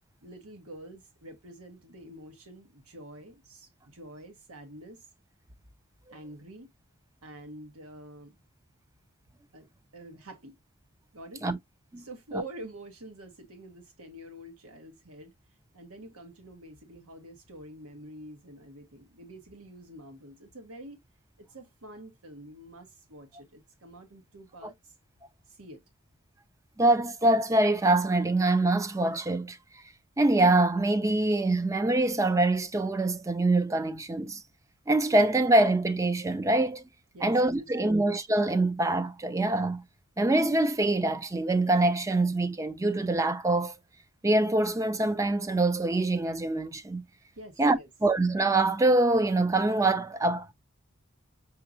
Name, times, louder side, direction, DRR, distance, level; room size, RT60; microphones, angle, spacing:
voice 1, 0.2-5.1 6.1-6.7 7.2-8.4 9.5-10.6 11.1-11.4 12.0-15.3 15.7-21.0 21.4-24.9 25.5-25.8 37.1-38.0 47.4-47.9, right 1 dB, 85° right, 1.2 m, -47 dB
voice 2, 26.8-29.6 30.2-34.4 34.9-36.8 37.2-39.8 40.2-43.7 44.2-47.0 47.6-50.5, right 2 dB, 15° right, 0.4 m, -24 dB
5.9 x 2.8 x 2.5 m
head